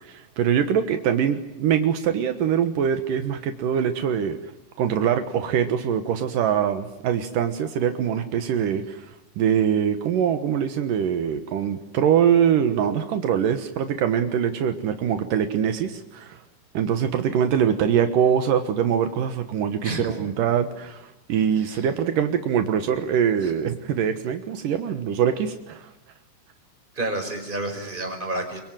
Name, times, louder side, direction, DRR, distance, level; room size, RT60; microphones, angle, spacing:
voice 1, 0.0-4.4 4.8-16.4 16.7-25.9, right 8 dB, 85° right, 8 dB, 1.9 m, -23 dB
voice 2, 8.5-8.8 19.8-20.2 21.6-21.9 23.4-23.5 26.9-28.6, right 2 dB, 10° right, 5 dB, 4.8 m, -30 dB
27.0 x 23.5 x 9.1 m, 0.87 s
omnidirectional pair, 6.0 m